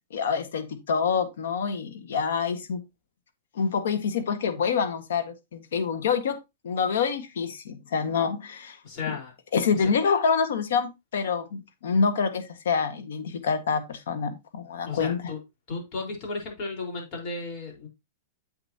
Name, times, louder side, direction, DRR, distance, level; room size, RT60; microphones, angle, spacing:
voice 1, 0.1-2.8 3.5-6.4 6.6-8.8 9.5-15.2, left 6 dB, 80° left, 1.6 m, -26 dB
voice 2, 8.8-9.3 9.7-9.8 14.8-15.4 15.7-17.9, left 4 dB, 45° left, 4.5 m, -34 dB
8.2 x 6.9 x 2.9 m
hypercardioid pair, 135°, 0 cm